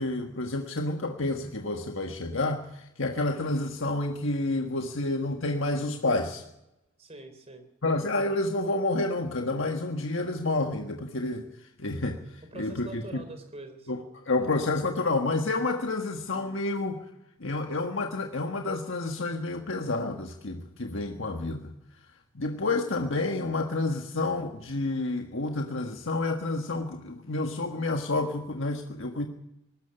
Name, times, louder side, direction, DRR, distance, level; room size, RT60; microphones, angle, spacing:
voice 1, 0.0-6.4 7.8-11.5 11.8-13.2 13.9-17.0 17.4-21.7 22.3-29.3, left 2 dB, 65° left, 4 dB, 1.6 m, -29 dB
voice 2, 7.0-7.7 12.5-13.9, right 2 dB, 30° right, 8 dB, 3.8 m, -44 dB
19.0 x 13.5 x 9.9 m, 0.88 s
head